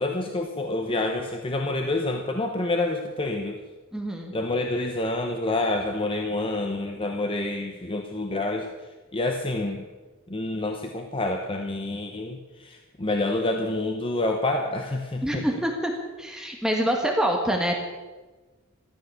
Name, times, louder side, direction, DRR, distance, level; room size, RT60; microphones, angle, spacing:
voice 1, 0.0-3.6 4.3-8.7 9.1-9.9 10.3-15.6, left 2 dB, 25° left, 4 dB, 1.0 m, -28 dB
voice 2, 3.9-4.3 15.2-15.9 16.2-17.7, equal, 5° right, 1 dB, 1.6 m, -25 dB
14.0 x 13.5 x 7.1 m, 1.3 s
head